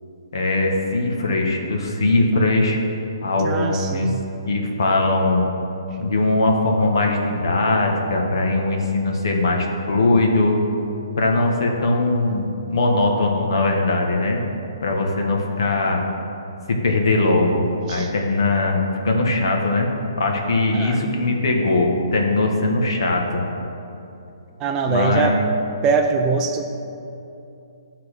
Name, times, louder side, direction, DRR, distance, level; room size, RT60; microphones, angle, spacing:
voice 1, 0.3-2.8 3.2-4.1 4.5-5.4 6.0-10.6 11.2-14.4 14.8-16.0 16.7-17.6 17.9-19.9 20.2-23.4 24.8-25.5, left 2 dB, 65° left, 1 dB, 1.4 m, -20 dB
voice 2, 3.4-4.2 17.9-18.1 20.7-21.1 24.6-25.4 25.8-26.8, right 5 dB, 15° right, 4 dB, 0.3 m, -23 dB
11.0 x 4.1 x 6.6 m, 2.8 s
hypercardioid pair, 170°, 2 cm